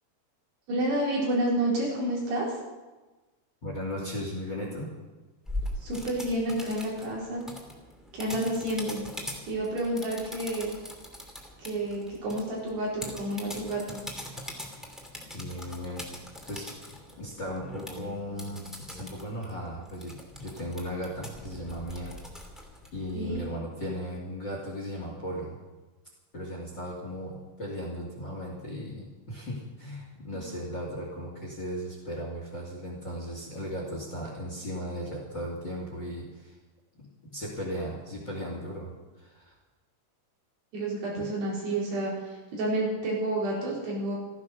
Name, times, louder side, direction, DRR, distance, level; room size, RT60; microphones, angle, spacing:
voice 1, 0.7-2.6 5.8-7.5 8.1-9.0 9.5-10.8 11.6-14.0 23.1-23.4 40.7-44.2, right 1 dB, 65° right, -4 dB, 6.2 m, -30 dB
voice 2, 3.6-4.9 15.3-16.6 17.2-22.1 22.9-25.6 26.3-36.6 36.9-38.9 39.2-39.5 41.1-41.3, equal, 30° left, -2 dB, 2.6 m, -36 dB
sound 1, 5.4-23.4, left 1 dB, ahead, 0.9 m, -42 dB
15.0 x 14.0 x 6.5 m, 1.2 s
omnidirectional pair, 5.2 m